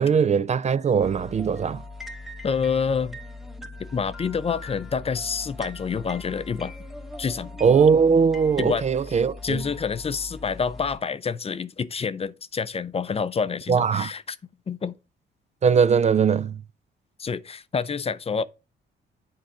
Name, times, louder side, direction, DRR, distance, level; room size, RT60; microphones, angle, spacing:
voice 1, 0.0-1.8 7.6-9.6 13.7-14.1 15.6-16.5, right 6 dB, 35° right, 0.4 m, -20 dB
sound 1, 1.0-11.0, left 2 dB, ahead, 1.0 m, -40 dB
voice 2, 2.4-3.2 3.8-6.7 7.2-7.6 8.6-14.4 14.7-14.9 17.2-18.4, left 6 dB, 30° left, 0.5 m, -28 dB
7.6 x 4.7 x 5.1 m
cardioid pair, 90°, 20 cm